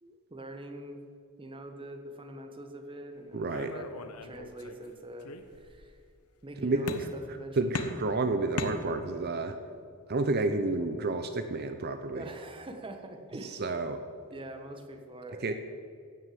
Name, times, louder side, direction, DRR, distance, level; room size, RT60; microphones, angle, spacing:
voice 1, 0.0-1.0 1.4-3.9 4.2-5.3 5.5-6.0 6.4-7.8 12.1-13.7 14.3-15.5, right 1 dB, 25° right, 4 dB, 1.2 m, -44 dB
voice 2, 3.3-3.7 6.6-7.1 7.6-9.6 10.1-12.3 13.6-14.0 15.4-15.5, right 3 dB, 45° right, 8 dB, 0.6 m, -30 dB
sound 1, 3.5-4.9 5.2-5.9 6.9-7.4 7.7-9.3, left 3 dB, 80° left, 1.0 m, -38 dB
16.0 x 6.2 x 7.7 m, 2.2 s
head